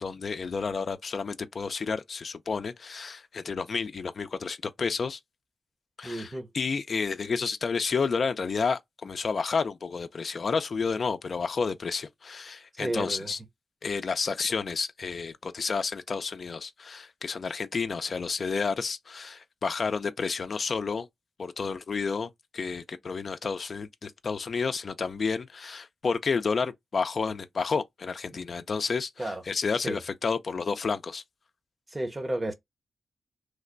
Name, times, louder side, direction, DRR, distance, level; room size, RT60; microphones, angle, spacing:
voice 1, 0.0-5.2 6.0-13.4 13.8-21.1 21.4-31.2, left 5 dB, 55° left, 0.4 m, -30 dB
voice 2, 6.0-6.5 12.8-13.3 29.2-29.4 29.8-30.0 31.9-32.5, right 1 dB, 25° right, 0.8 m, -32 dB
3.2 x 2.1 x 3.8 m
cardioid pair, 70°, 0 cm